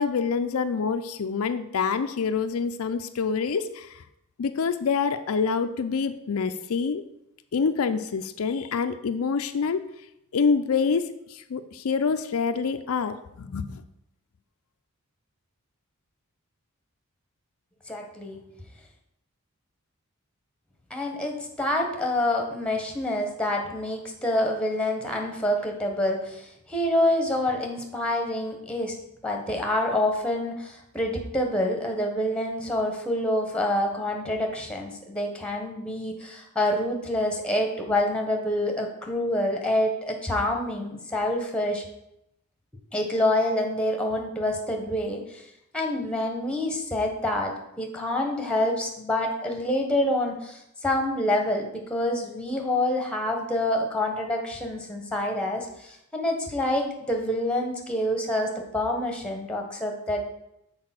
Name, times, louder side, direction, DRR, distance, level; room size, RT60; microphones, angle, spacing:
voice 1, 0.0-4.0 4.4-7.0 7.5-9.8 10.3-13.8, left 5 dB, 70° left, 8 dB, 0.4 m, -26 dB
voice 2, 17.9-18.4 20.9-29.0 29.2-41.8 42.9-45.4 45.7-60.4, left 1 dB, 5° left, 2 dB, 1.1 m, -27 dB
6.6 x 4.3 x 5.9 m, 0.81 s
head